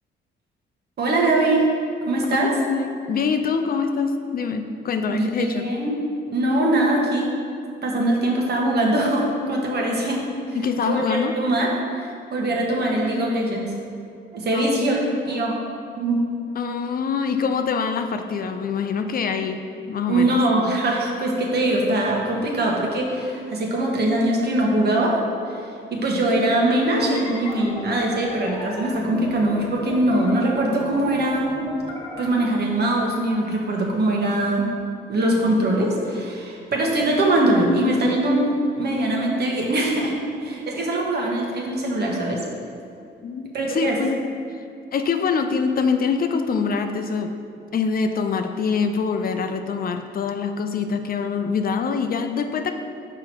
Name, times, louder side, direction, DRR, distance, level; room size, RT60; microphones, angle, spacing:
voice 1, 1.0-1.6 2.1-2.5 5.1-6.0 6.3-7.3 7.8-10.2 10.9-11.7 12.0-13.7 14.3-15.6 15.9-16.2 20.1-25.2 25.5-31.5 32.2-34.7 35.1-38.5 38.8-40.1 40.4-42.4 43.5-44.0, right 1 dB, 55° right, -1 dB, 1.4 m, -22 dB
voice 2, 2.4-5.7 10.5-11.4 14.5-15.2 16.6-19.6 19.9-20.4 43.2-44.2 44.9-47.3 47.7-52.7, left 5 dB, 50° left, 6 dB, 0.5 m, -24 dB
sound 1, 27.0-32.3, left 1 dB, 30° left, 1.6 m, -35 dB
5.8 x 4.9 x 4.6 m, 2.5 s
cardioid pair, 90°, 20 cm